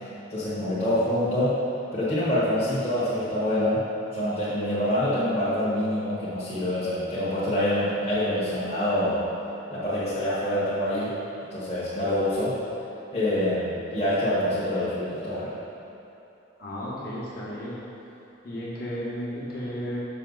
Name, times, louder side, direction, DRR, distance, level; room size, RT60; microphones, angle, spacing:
voice 1, 0.3-1.6 1.9-3.8 4.1-9.3 9.7-11.2 11.5-12.5 13.1-15.5, left 1 dB, 30° left, -11 dB, 1.4 m, -26 dB
voice 2, 16.6-17.8 18.4-20.0, equal, 50° left, -7 dB, 1.5 m, -33 dB
6.6 x 5.7 x 4.0 m, 2.9 s
head